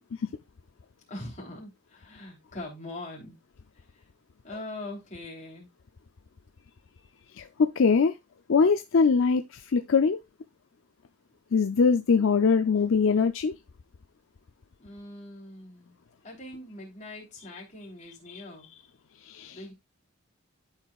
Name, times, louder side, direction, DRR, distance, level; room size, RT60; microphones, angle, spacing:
voice 1, 1.1-3.4 3.7-4.1 4.4-5.7 14.8-18.7 19.5-19.7, left 2 dB, 35° left, 3.3 m, -42 dB
voice 2, 7.4-8.1 8.5-10.2 11.5-13.5 19.3-19.6, left 5 dB, 70° left, 0.5 m, -22 dB
12.0 x 4.9 x 2.4 m
head